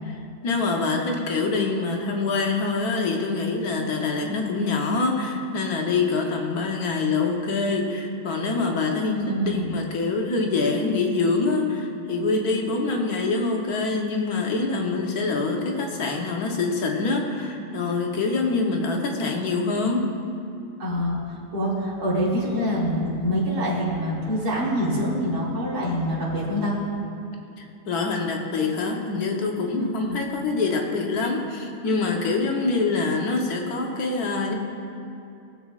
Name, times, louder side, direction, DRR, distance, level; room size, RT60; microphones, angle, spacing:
voice 1, 0.0-20.1 27.6-34.5, left 3 dB, 75° left, 1 dB, 1.5 m, -25 dB
voice 2, 9.1-9.7 20.8-26.8 29.8-30.2, equal, 80° right, -7 dB, 2.9 m, -25 dB
18.5 x 7.0 x 2.4 m, 2.6 s
omnidirectional pair, 1.6 m